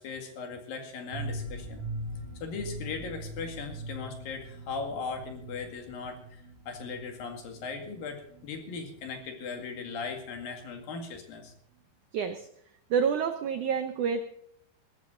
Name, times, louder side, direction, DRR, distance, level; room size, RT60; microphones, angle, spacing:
voice 1, 0.0-1.9 2.4-11.5, left 5 dB, 60° left, 4 dB, 3.6 m, -38 dB
sound 1, 1.1-10.7 11.0-11.1 11.4-11.5, right 1 dB, 50° right, 5.8 m, -42 dB
voice 2, 12.1-12.5 12.9-14.2, right 6 dB, 80° right, 8 dB, 1.7 m, -28 dB
18.0 x 14.5 x 3.8 m, 0.70 s
omnidirectional pair, 4.8 m